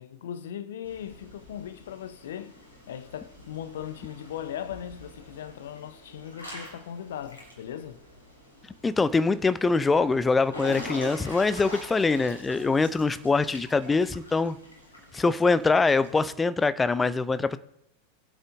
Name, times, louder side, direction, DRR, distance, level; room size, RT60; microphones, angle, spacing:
voice 1, 0.0-8.0, left 10 dB, 60° left, 0.7 m, -38 dB
Water / Splash splatter / Drip, 0.8-16.1, equal, 75° left, 4.0 m, -45 dB
voice 2, 8.8-14.6 15.1-17.6, left 4 dB, 15° left, 0.5 m, -23 dB
22.5 x 8.0 x 2.6 m
figure-of-eight pair, 90°, 0 cm